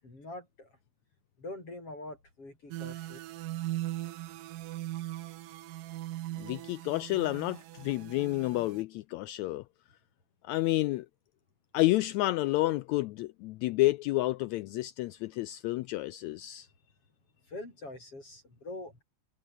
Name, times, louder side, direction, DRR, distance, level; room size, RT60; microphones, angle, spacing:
voice 1, 0.0-0.8 1.4-3.2 15.3-15.4 17.4-19.0, left 2 dB, 45° left, 9.2 m, -44 dB
sound 1, 2.7-8.8, right 15 dB, 90° right, 2.7 m, -39 dB
voice 2, 6.4-9.6 10.4-11.1 11.7-16.7, left 18 dB, 80° left, 1.6 m, -30 dB
omnidirectional pair, 3.7 m